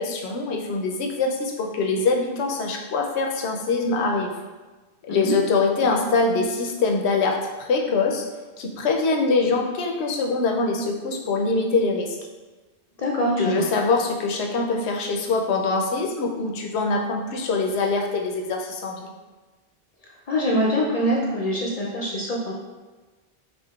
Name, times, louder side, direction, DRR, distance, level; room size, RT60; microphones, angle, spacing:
voice 1, 0.0-4.3 5.0-8.2 8.6-12.2 13.4-19.1, left 3 dB, 90° left, 2 dB, 0.8 m, -24 dB
voice 2, 13.0-13.7 20.3-22.5, equal, 55° left, -3 dB, 0.4 m, -24 dB
5.2 x 2.5 x 2.3 m, 1.2 s
omnidirectional pair, 1.1 m